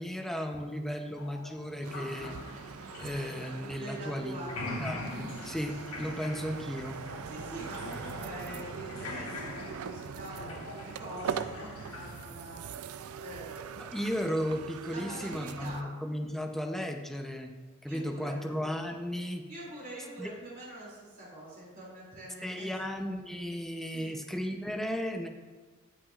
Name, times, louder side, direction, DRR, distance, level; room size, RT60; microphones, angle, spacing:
voice 1, 0.0-2.3 3.0-4.4 4.8-7.0 13.8-17.5 17.8-19.4 20.2-20.3 22.4-25.3, equal, ahead, 4 dB, 0.6 m, -35 dB
sound 1, 1.2-4.1 4.4-12.3, left 2 dB, 75° left, 1.5 m, -43 dB
sound 2, 1.8-15.8, right 7 dB, 70° right, 0.4 m, -42 dB
voice 2, 3.8-4.5 7.2-12.9 13.2-14.0 14.9-15.9 17.9-18.4 19.5-23.1 23.9-24.2, right 1 dB, 40° right, -6 dB, 2.8 m, -44 dB
16.5 x 6.0 x 2.4 m, 1.3 s
head